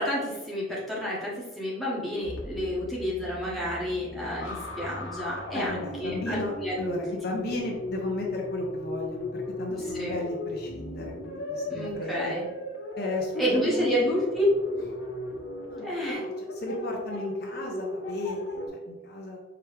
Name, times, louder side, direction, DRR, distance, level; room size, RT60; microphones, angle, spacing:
voice 1, 0.0-7.0 9.9-10.1 11.7-12.4 13.4-14.5 15.8-16.2, equal, ahead, -7 dB, 1.0 m, -30 dB
sound 1, 2.2-18.7, left 1 dB, 90° left, 0.9 m, -36 dB
voice 2, 5.5-12.4 13.0-13.9 15.7-19.4, left 2 dB, 50° left, 0 dB, 0.6 m, -34 dB
4.6 x 2.9 x 3.3 m, 1.1 s
head